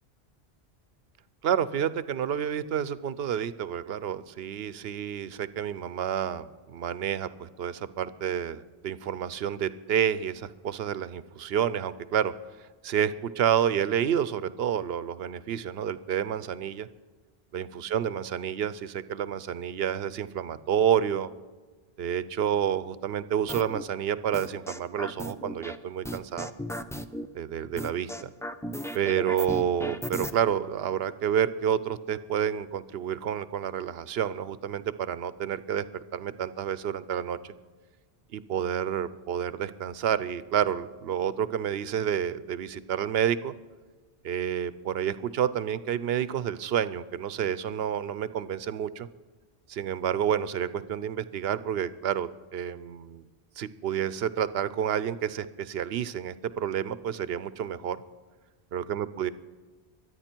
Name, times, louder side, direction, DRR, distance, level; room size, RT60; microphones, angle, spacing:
voice 1, 1.4-12.3 12.8-16.9 17.5-21.3 22.0-26.5 27.3-28.3 28.9-37.5 38.3-43.5 44.2-49.1 49.7-53.2 53.6-58.0 58.7-59.3, right 9 dB, 75° right, 15 dB, 0.9 m, -29 dB
sound 1, 23.5-23.8 24.3-25.8 26.0-27.3 27.8-30.3, equal, 5° left, 0.3 m, -35 dB
23.5 x 9.5 x 4.5 m, 1.3 s
omnidirectional pair, 1.0 m